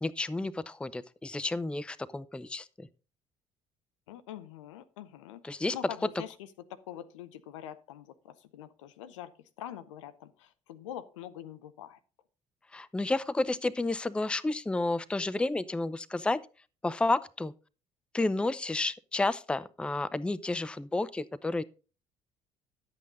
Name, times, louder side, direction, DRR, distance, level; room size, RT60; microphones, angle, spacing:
voice 1, 0.0-2.9 5.4-5.8 12.7-16.4 16.8-17.5 18.1-21.6, left 2 dB, 5° left, 0.5 m, -31 dB
voice 2, 4.1-6.3 6.7-9.3 9.6-12.0, left 11 dB, 70° left, 0.8 m, -44 dB
11.5 x 8.3 x 3.9 m
figure-of-eight pair, 55°, 16 cm